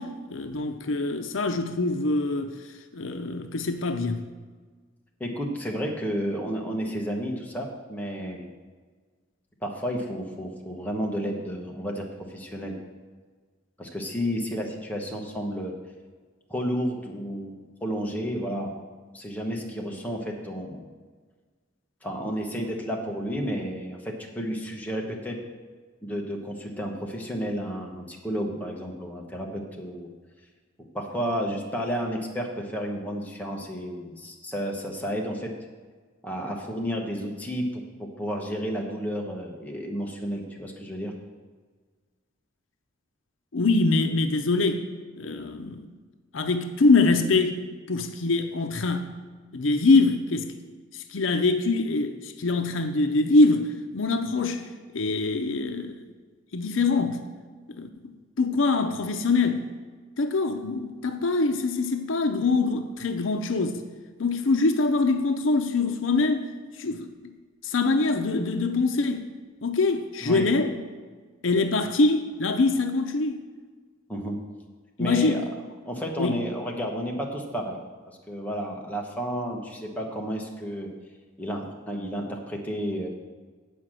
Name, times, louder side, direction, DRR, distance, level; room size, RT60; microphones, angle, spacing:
voice 1, 0.0-2.5 2.9-4.2 43.5-44.8 45.2-45.9 46.3-47.6 47.9-49.1 49.5-50.5 50.9-54.6 54.9-56.0 56.5-57.2 57.7-57.9 58.4-59.6 60.2-63.8 64.2-66.5 66.8-67.1 67.6-69.3 69.6-70.7 71.4-73.4 75.0-75.4 76.2-76.4, left 3 dB, 80° left, 0.6 m, -24 dB
voice 2, 5.2-8.5 9.6-12.8 13.8-15.7 16.5-17.5 17.8-18.8 19.1-20.8 22.0-25.4 26.0-30.1 30.9-35.5 36.2-41.1 70.2-70.5 74.1-74.4 75.0-75.4 75.8-77.8 78.1-80.9 81.4-83.1, equal, 10° left, 1.1 m, -31 dB
8.1 x 5.0 x 7.5 m
head